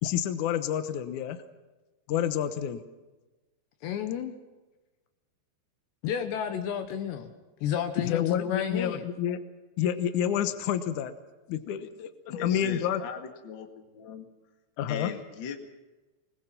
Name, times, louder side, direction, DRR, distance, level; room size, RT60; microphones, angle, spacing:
voice 1, 0.0-1.4 2.1-2.8 8.0-9.4 9.8-11.1 11.5-13.0 14.8-15.1, left 10 dB, 90° left, 10 dB, 1.7 m, -29 dB
voice 2, 3.8-4.3 6.0-7.3 7.6-9.0, left 9 dB, 75° left, 7 dB, 3.2 m, -31 dB
voice 3, 12.3-14.3 14.9-15.6, left 6 dB, 45° left, 5 dB, 1.5 m, -39 dB
25.0 x 21.0 x 5.8 m, 1.2 s
omnidirectional pair, 5.3 m